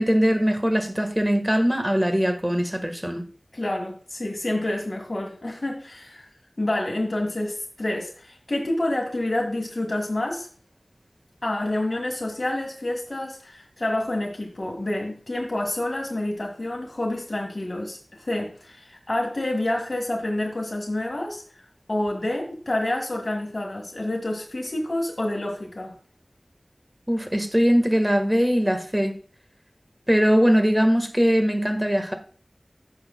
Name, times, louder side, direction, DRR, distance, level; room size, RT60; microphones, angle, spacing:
voice 1, 0.0-3.2 27.1-29.2 30.1-32.1, equal, 10° right, 1.4 m, -21 dB
voice 2, 3.5-6.3 6.6-10.5 11.4-21.4 21.9-25.9, left 1 dB, 55° left, 1.8 m, -28 dB
15.0 x 6.4 x 2.2 m
wide cardioid pair, 40°, 0 cm